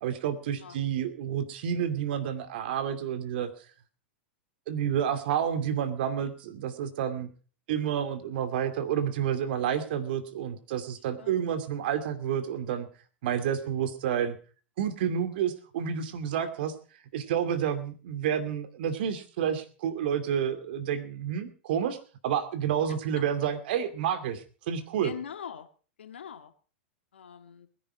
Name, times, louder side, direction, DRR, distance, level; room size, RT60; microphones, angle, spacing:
voice 1, 0.0-3.5 4.7-7.3 7.7-12.9 13.2-14.4 14.8-22.0 22.2-25.1, right 9 dB, 60° right, 10 dB, 2.5 m, -30 dB
voice 2, 25.0-25.7 26.0-26.5 27.1-27.7, left 8 dB, 75° left, 9 dB, 2.0 m, -42 dB
21.5 x 10.5 x 4.9 m, 0.39 s
figure-of-eight pair, 100°, 6 cm